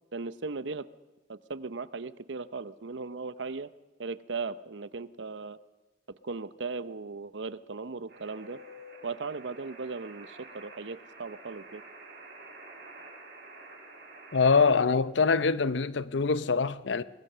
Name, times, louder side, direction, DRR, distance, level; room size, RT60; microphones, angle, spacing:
voice 1, 0.1-0.9 1.3-3.7 4.0-5.6 6.2-8.6 9.0-11.8, right 4 dB, 75° right, 0.8 m, -37 dB
sound 1, 8.1-14.7, right 2 dB, 55° right, 7.8 m, -49 dB
voice 2, 14.3-17.0, left 4 dB, 75° left, 0.7 m, -24 dB
23.0 x 21.0 x 6.7 m
head